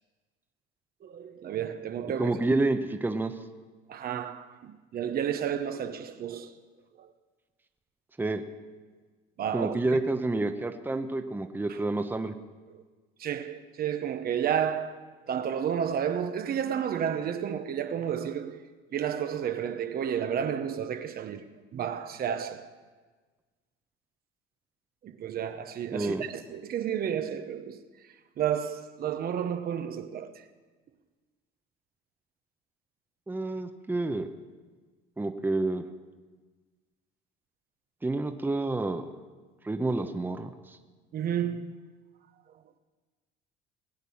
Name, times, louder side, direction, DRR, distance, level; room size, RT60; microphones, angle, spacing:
voice 1, 1.0-2.3 3.9-6.5 7.0-7.1 9.4-9.8 11.7-11.8 12.7-12.8 13.2-15.0 15.3-18.6 18.9-21.4 21.7-22.7 25.0-27.8 28.4-30.4 41.1-41.8, right 8 dB, 50° right, 1.0 m, -31 dB
voice 2, 2.2-3.3 8.2-8.4 9.5-12.3 25.9-26.2 33.3-34.3 35.2-35.8 38.0-39.1 39.6-40.8, right 2 dB, 10° right, 0.9 m, -29 dB
19.5 x 8.2 x 7.1 m
cardioid pair, 115°, 21 cm